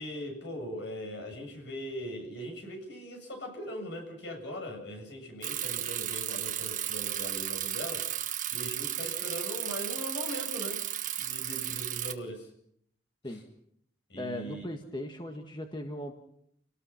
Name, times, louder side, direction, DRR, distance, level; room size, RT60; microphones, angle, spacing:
voice 1, 0.0-10.8 11.2-12.5 13.3-13.4 14.1-14.7, equal, 75° left, 3 dB, 7.6 m, -40 dB
Bicycle, 5.4-12.1, right 11 dB, 45° right, 1.5 m, -34 dB
voice 2, 14.2-16.1, left 1 dB, 25° left, 4 dB, 1.7 m, -38 dB
29.5 x 18.5 x 5.8 m, 0.69 s
head